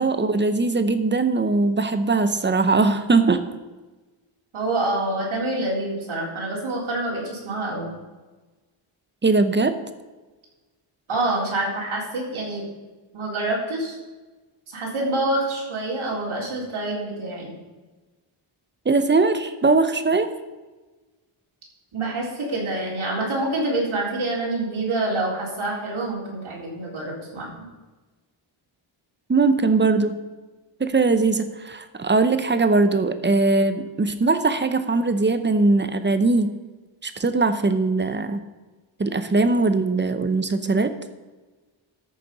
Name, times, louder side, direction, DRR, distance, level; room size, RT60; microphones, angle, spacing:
voice 1, 0.0-3.4 9.2-9.8 18.9-20.3 29.3-30.2 30.8-36.5 37.0-38.4 39.0-41.0, right 3 dB, 20° right, 10 dB, 0.8 m, -20 dB
voice 2, 4.5-7.9 11.1-12.6 13.1-14.0 14.7-17.6 21.9-27.6, right 2 dB, 75° right, -3 dB, 4.2 m, -26 dB
13.5 x 6.7 x 5.4 m, 1.2 s
wide cardioid pair, 135°, 49 cm